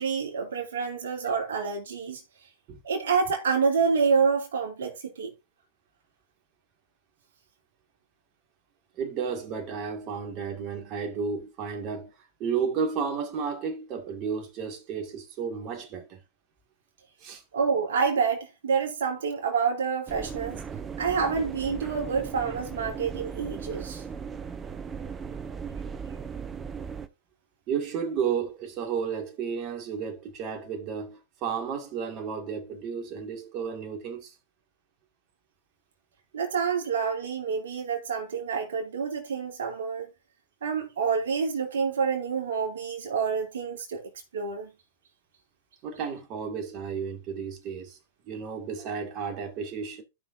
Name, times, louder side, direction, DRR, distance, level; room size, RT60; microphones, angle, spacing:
voice 1, 0.0-2.2 2.8-5.3 17.5-20.6 21.0-24.0 36.3-40.1 40.6-44.0 44.3-44.7, right 5 dB, 65° right, 2.6 m, -27 dB
voice 2, 9.0-12.1 12.4-16.2 17.2-17.4 27.7-34.3 45.8-48.0 48.2-50.0, right 6 dB, 40° right, 2.1 m, -32 dB
sound 1, 20.1-27.1, right 6 dB, 20° right, 0.8 m, -37 dB
15.0 x 5.9 x 2.7 m
figure-of-eight pair, 105°, 0 cm